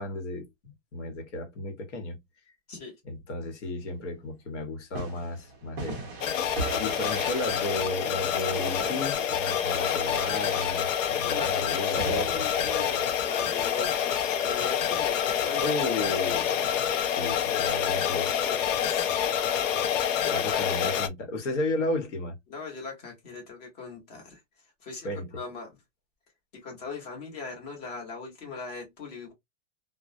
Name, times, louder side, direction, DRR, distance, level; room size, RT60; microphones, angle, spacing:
voice 1, 0.0-2.2 3.0-6.0 6.8-12.4 15.6-18.3 20.3-22.3 25.0-25.3, left 2 dB, 70° left, 1.2 m, -33 dB
sound 1, 4.9-14.1 19.7-20.1, right 3 dB, 15° right, 0.4 m, -39 dB
sound 2, 6.2-21.1, left 9 dB, 85° left, 0.6 m, -27 dB
voice 2, 11.2-16.4 17.5-18.6 18.8-19.1 20.2-20.9 22.5-24.4 24.8-25.7 26.5-29.3, left 4 dB, 35° left, 1.0 m, -40 dB
2.2 x 2.1 x 2.5 m
supercardioid pair, 180°, 37 cm